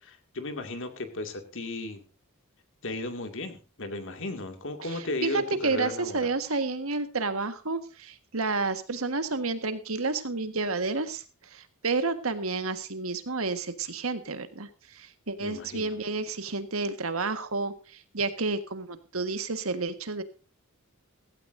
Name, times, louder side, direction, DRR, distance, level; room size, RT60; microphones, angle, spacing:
voice 1, 0.0-2.0 2.8-6.3 15.4-16.0, left 2 dB, 60° left, 6 dB, 2.3 m, -35 dB
voice 2, 5.2-11.2 11.5-20.2, right 3 dB, 70° right, 10 dB, 1.6 m, -30 dB
16.5 x 16.0 x 2.7 m, 0.33 s
head